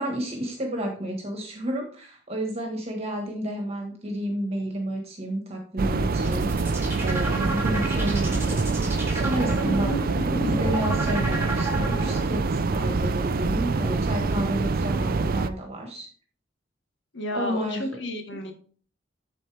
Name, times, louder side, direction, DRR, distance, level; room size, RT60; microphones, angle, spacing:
voice 1, 0.0-8.6 9.1-16.1 17.3-17.9, equal, 35° right, 2 dB, 1.5 m, -31 dB
sound 1, 5.8-15.5, right 3 dB, 50° right, 0.5 m, -25 dB
sound 2, 6.2-12.4, right 2 dB, 15° right, 1.7 m, -32 dB
voice 2, 17.1-18.5, left 1 dB, 70° left, 4 dB, 1.5 m, -31 dB
10.5 x 4.2 x 3.4 m, 0.44 s
head